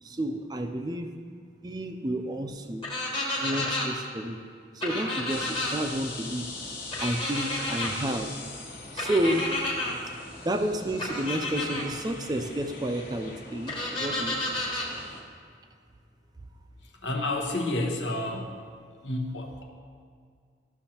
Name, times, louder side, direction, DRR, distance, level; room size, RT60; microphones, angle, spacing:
voice 1, 0.0-1.1 1.6-2.9 3.4-4.4 4.7-6.5 7.0-8.3 8.9-9.4 10.4-14.4, right 1 dB, 20° right, 5 dB, 0.4 m, -30 dB
sound 1, 2.8-3.9 4.8-5.7 6.9-7.9 9.0-9.9 11.0-11.8 13.7-14.9, left 1 dB, 25° left, 1.3 m, -31 dB
sound 2, 5.3-15.2, left 3 dB, 45° left, 1.1 m, -42 dB
voice 2, 17.0-18.5 19.0-19.6, left 2 dB, 85° left, 2 dB, 1.0 m, -30 dB
13.0 x 6.3 x 2.9 m, 2.1 s
head